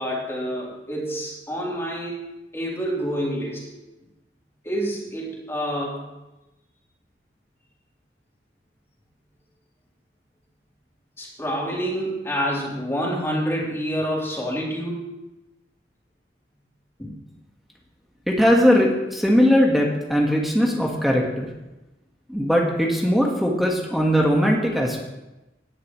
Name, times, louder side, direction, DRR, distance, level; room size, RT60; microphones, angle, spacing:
voice 1, 0.0-2.2 2.5-3.7 4.6-6.1 11.2-15.0 17.0-17.1, equal, 15° left, -4 dB, 3.4 m, -27 dB
voice 2, 18.3-21.5 22.3-25.1, equal, ahead, -2 dB, 1.5 m, -20 dB
17.5 x 11.0 x 3.1 m, 0.99 s
head